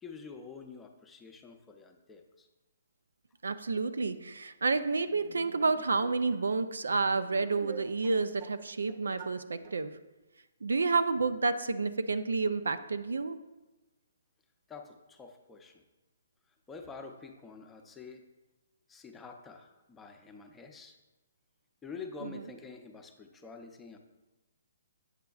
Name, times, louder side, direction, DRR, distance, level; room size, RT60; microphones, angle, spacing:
voice 1, 0.0-2.5 14.7-15.7 16.7-18.2 18.9-21.0 21.8-24.0, left 5 dB, 10° left, 4 dB, 0.6 m, -47 dB
voice 2, 3.4-9.9 10.6-13.4 22.2-22.4, right 4 dB, 80° right, 11 dB, 0.4 m, -30 dB
sound 1, 5.1-6.4 7.1-8.6 8.9-9.4 9.6-9.8, right 5 dB, 45° right, 0.8 m, -48 dB
8.1 x 6.6 x 2.4 m, 1.1 s
hypercardioid pair, 140°, 0 cm